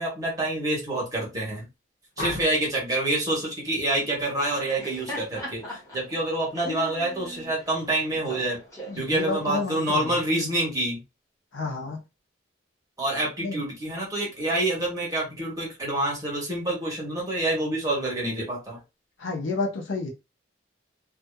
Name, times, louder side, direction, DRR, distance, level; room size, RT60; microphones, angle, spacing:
voice 1, 0.0-1.6 2.2-8.6 9.0-11.0 13.0-18.8, right 1 dB, 20° right, -4 dB, 1.2 m, -27 dB
sound 1, 2.2-2.8 4.5-4.8 5.2-5.6, left 1 dB, 45° left, 0.7 m, -37 dB
Laughter, 4.7-9.9, equal, 15° left, 1.1 m, -40 dB
voice 2, 8.9-10.1 11.5-12.0 13.4-13.6 19.2-20.1, left 3 dB, 80° left, 1 dB, 0.8 m, -30 dB
2.7 x 2.4 x 2.2 m, 0.25 s
head